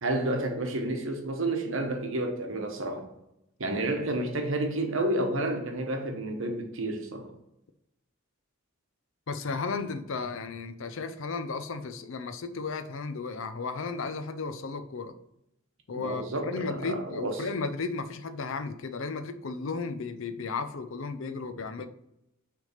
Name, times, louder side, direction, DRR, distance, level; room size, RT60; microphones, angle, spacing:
voice 1, 0.0-3.1 3.6-7.3 15.9-17.4, right 1 dB, 65° right, 1.1 m, -30 dB
voice 2, 9.3-15.1 15.9-21.9, left 4 dB, 65° left, 0.5 m, -34 dB
6.3 x 3.4 x 5.7 m
head